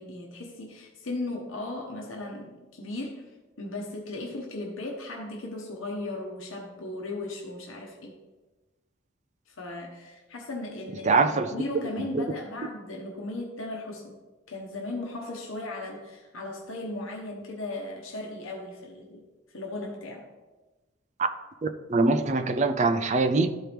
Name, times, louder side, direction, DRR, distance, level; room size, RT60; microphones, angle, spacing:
voice 1, 0.0-3.3 3.6-8.2 9.5-14.2 14.5-19.2 19.5-20.3, left 2 dB, 75° left, 0 dB, 1.0 m, -37 dB
voice 2, 11.0-11.5 11.7-11.8 12.1-12.2 21.6-23.5, right 3 dB, 35° right, 8 dB, 0.5 m, -23 dB
12.5 x 4.5 x 3.4 m, 1.2 s
head